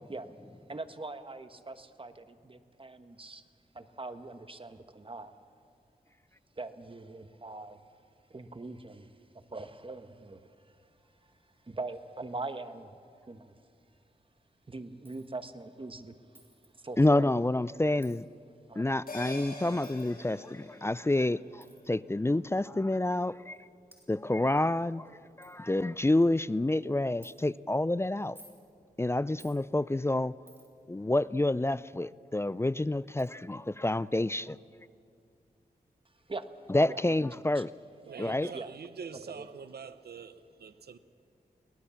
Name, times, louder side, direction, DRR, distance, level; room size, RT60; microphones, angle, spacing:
voice 1, 0.7-3.4 3.7-5.3 6.6-7.8 8.3-10.4 11.6-13.0 13.3-13.5 14.7-16.1 16.8-17.3 18.7-18.9 36.3-36.5 36.9-37.3 37.5-37.6 38.5-38.8 39.3-39.5, right 3 dB, 35° right, 1.3 m, -42 dB
Coin (dropping), 15.0-15.3 16.3-16.7 18.0-18.2 19.8-20.1 21.6-21.8 22.8-22.9 23.5-23.6 23.9-24.1 24.7-24.8 25.1-25.2 25.4-25.5 26.0-26.3 27.2-27.3 28.2-28.6 29.4-29.6 30.5-30.8 32.5-32.6 33.2-33.3, right 1 dB, 15° right, 4.6 m, -57 dB
voice 2, 17.0-18.3 18.8-23.6 24.1-25.1 25.4-28.4 29.0-30.3 30.9-34.6 36.7-37.7 38.2-38.5, left 2 dB, 15° left, 0.4 m, -28 dB
sound 1, 19.1-23.8 24.1-24.2, left 1 dB, 65° left, 5.9 m, -47 dB
voice 3, 38.0-41.0, right 6 dB, 85° right, 0.8 m, -44 dB
23.5 x 18.5 x 7.1 m
cardioid pair, 60°, 16 cm